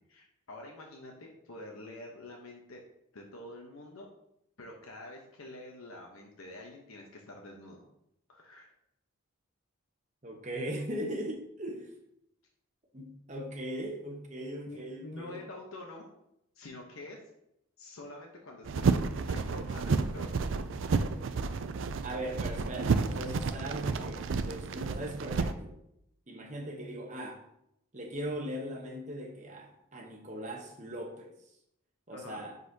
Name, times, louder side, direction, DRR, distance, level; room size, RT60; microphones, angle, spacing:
voice 1, 0.1-2.8 3.1-4.1 4.6-7.8 8.3-8.7 14.7-16.1 16.6-17.2 17.8-20.3 32.1-32.5, left 2 dB, 75° left, 0 dB, 0.9 m, -47 dB
voice 2, 10.2-11.9 12.9-15.5 22.0-25.8 26.3-27.4 27.9-31.4 32.1-32.6, right 1 dB, 35° right, 2 dB, 1.0 m, -39 dB
sound 1, 18.6-25.5, right 4 dB, 60° right, 0.4 m, -31 dB
9.7 x 4.1 x 2.8 m, 0.78 s
head